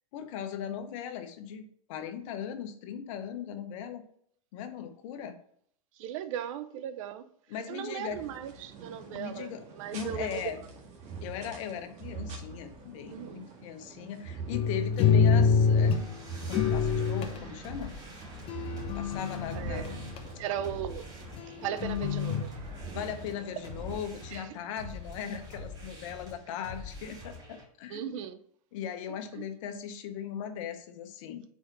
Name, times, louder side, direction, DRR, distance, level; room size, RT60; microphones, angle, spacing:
voice 1, 0.1-1.6 1.9-4.0 4.5-5.4 7.5-8.2 9.1-9.6 9.9-10.6 11.2-16.0 16.5-17.9 18.9-19.9 22.9-28.2 28.7-31.4, left 8 dB, 60° left, 0.9 m, -38 dB
voice 2, 6.0-7.3 7.7-10.5 13.1-13.5 19.5-20.0 20.4-21.1 21.5-22.6 24.3-24.5 27.9-28.4 29.1-29.5, right 9 dB, 60° right, 0.6 m, -37 dB
sound 1, 8.1-24.0, right 5 dB, 40° right, 1.7 m, -44 dB
sound 2, 14.5-16.1 16.5-17.4 18.5-20.2 21.4-22.4, left 6 dB, 30° left, 0.7 m, -26 dB
sound 3, 15.3-27.6, left 2 dB, 20° right, 2.2 m, -44 dB
4.5 x 4.4 x 5.9 m
hypercardioid pair, 120°, 19 cm